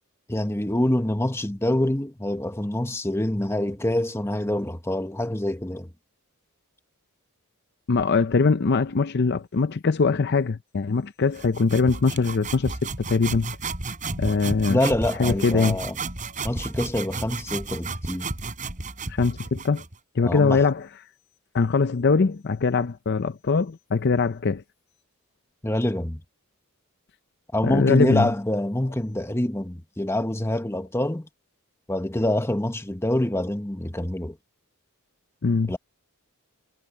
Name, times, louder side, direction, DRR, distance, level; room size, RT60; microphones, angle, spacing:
voice 1, 0.3-5.9 14.7-16.0 16.4-18.3 20.2-20.7 25.6-26.2 27.5-31.3 31.9-34.4 35.7-35.8, left 1 dB, 10° left, 1.0 m, -25 dB
voice 2, 7.9-13.5 14.2-14.8 15.2-15.8 19.1-19.8 20.2-20.9 21.5-24.6 27.6-28.3 35.4-35.7, left 4 dB, 50° left, 0.5 m, -22 dB
sound 1, 11.3-20.0, right 3 dB, 35° right, 3.5 m, -33 dB
head